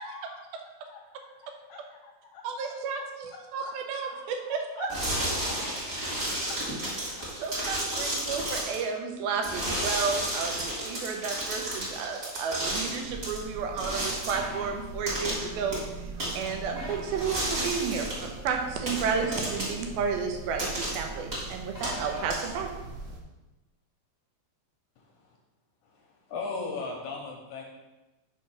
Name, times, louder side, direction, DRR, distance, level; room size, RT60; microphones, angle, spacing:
voice 1, 0.0-2.7 3.6-3.7 4.0-4.9 5.4-5.5 5.9-6.7 7.0-7.1, left 6 dB, 90° left, 0 dB, 1.8 m, -47 dB
voice 2, 2.4-4.9 7.4-15.8 16.4-22.7, right 5 dB, 85° right, 3 dB, 2.7 m, -32 dB
sound 1, 4.9-8.8 9.4-13.4 13.8-14.4 15.1-15.5 15.7-15.8 16.2-16.5 17.2-18.3 18.9-19.8 20.6-21.0 21.3-21.5 21.8-22.7, right 1 dB, 30° right, 2.1 m, -32 dB
sound 2, 13.0-23.2, right 4 dB, 65° right, 1.9 m, -42 dB
sound 3, 14.3-14.7 16.7-17.1 19.1-19.6 21.7-22.2, equal, 10° right, 1.2 m, -39 dB
voice 3, 26.3-27.6, left 4 dB, 75° left, 0 dB, 2.0 m, -35 dB
5.9 x 4.7 x 5.8 m, 1.1 s
omnidirectional pair, 4.2 m